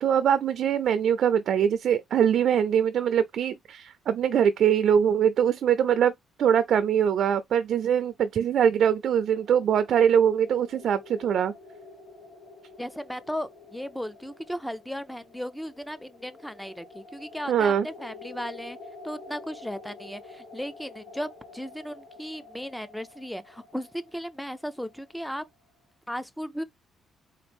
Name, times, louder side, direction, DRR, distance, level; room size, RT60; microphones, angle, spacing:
voice 1, 0.0-6.1 6.4-11.5 17.5-17.9, right 8 dB, 70° right, 0.4 m, -23 dB
sound 1, 8.7-25.5, left 3 dB, 35° left, 2.7 m, -49 dB
voice 2, 12.8-18.8 19.0-25.4 26.1-26.6, equal, ahead, 0.5 m, -36 dB
4.0 x 2.5 x 3.4 m
cardioid pair, 85°, 0 cm